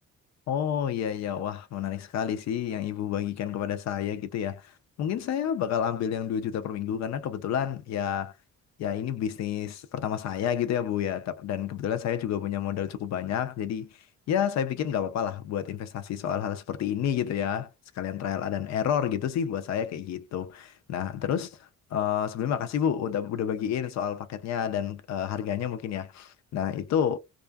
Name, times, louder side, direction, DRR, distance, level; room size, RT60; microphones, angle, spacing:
voice 1, 0.5-4.7 5.0-8.3 8.8-13.9 14.3-17.7 18.0-21.6 21.9-27.2, left 9 dB, 60° left, 0.5 m, -29 dB
2.4 x 2.4 x 2.3 m
cardioid pair, 90°, 30 cm